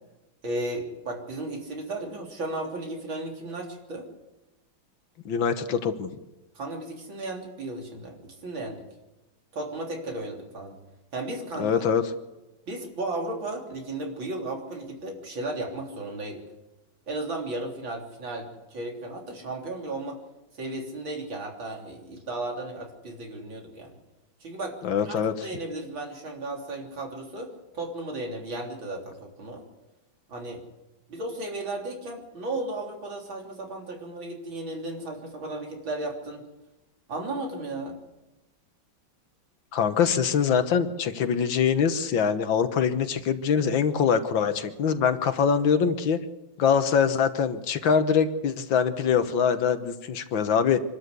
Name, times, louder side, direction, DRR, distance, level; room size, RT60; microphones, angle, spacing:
voice 1, 0.4-4.1 6.6-8.8 9.5-10.7 11.1-11.9 12.7-16.4 17.1-20.2 20.5-23.9 24.4-29.6 30.3-30.6 31.1-36.4 37.1-38.0, right 2 dB, 75° right, 1 dB, 4.2 m, -35 dB
voice 2, 5.3-6.1 11.6-12.0 24.8-25.3 39.7-46.2 46.6-50.8, left 7 dB, 75° left, 10 dB, 1.9 m, -23 dB
26.0 x 12.5 x 8.2 m, 1.0 s
omnidirectional pair, 2.1 m